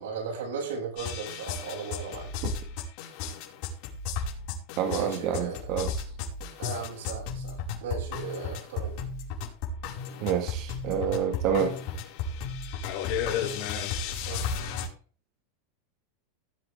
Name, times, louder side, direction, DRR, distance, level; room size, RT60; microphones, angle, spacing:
voice 1, 0.0-2.3 4.9-5.7 6.6-8.9 14.2-14.9, right 5 dB, 85° right, 7.5 m, -36 dB
sound 1, 1.0-14.9, left 5 dB, 45° left, 5.4 m, -34 dB
voice 2, 4.8-6.0 10.2-11.8, right 8 dB, 45° right, 2.0 m, -28 dB
18.5 x 8.0 x 3.6 m
supercardioid pair, 160°, 0 cm